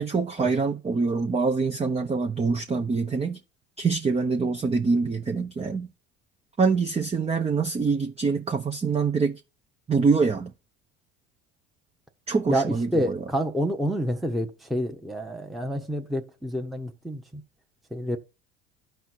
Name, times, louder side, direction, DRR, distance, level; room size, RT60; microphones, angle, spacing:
voice 1, 0.0-3.4 3.8-5.9 6.6-9.4 9.9-10.5 12.3-13.2, right 4 dB, 20° right, 0.8 m, -25 dB
voice 2, 12.5-17.4 17.9-18.2, equal, ahead, 1.1 m, -28 dB
12.0 x 4.6 x 4.3 m
hypercardioid pair, 80°, 32 cm